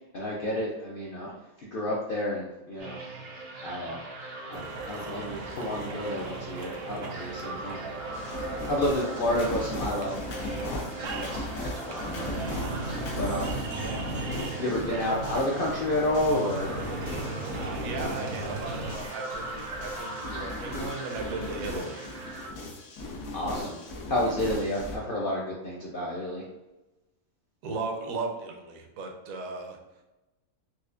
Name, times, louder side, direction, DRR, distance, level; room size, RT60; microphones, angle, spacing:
voice 1, 0.1-1.3 1.6-3.0 3.6-4.0 4.5-7.8 8.7-10.2 10.6-11.4 11.8-12.3 13.2-13.6 14.5-16.7 23.3-23.8 24.1-26.4, left 1 dB, 70° left, -4 dB, 0.5 m, -30 dB
sound 1, 2.8-22.5, right 2 dB, 55° right, 0.7 m, -40 dB
sound 2, 4.5-18.9, right 2 dB, 90° right, 1.1 m, -38 dB
sound 3, 8.1-25.0, left 2 dB, 85° left, 1.2 m, -38 dB
voice 2, 17.5-22.0 27.6-29.8, right 3 dB, 70° right, 2 dB, 1.0 m, -36 dB
4.3 x 2.4 x 2.4 m, 1.0 s
omnidirectional pair, 1.6 m